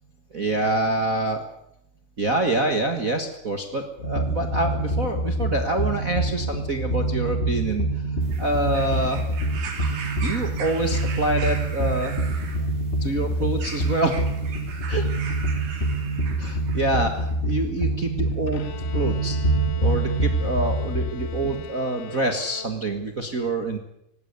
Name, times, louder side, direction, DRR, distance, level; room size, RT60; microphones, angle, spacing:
voice 1, 0.3-1.4 2.2-7.9 8.4-9.3 10.2-12.2 13.0-14.2 14.9-15.1 16.4-18.6 18.9-19.4 19.8-23.8, right 2 dB, 60° right, 5 dB, 0.8 m, -26 dB
sound 1, 4.0-21.6, right 2 dB, 20° left, 1.9 m, -26 dB
sound 2, 8.2-16.9 17.8-17.9, right 5 dB, 90° right, 4.9 m, -39 dB
Bowed string instrument, 18.5-23.2, left 5 dB, 60° left, 1.9 m, -41 dB
19.0 x 17.5 x 9.6 m, 0.77 s
omnidirectional pair, 4.5 m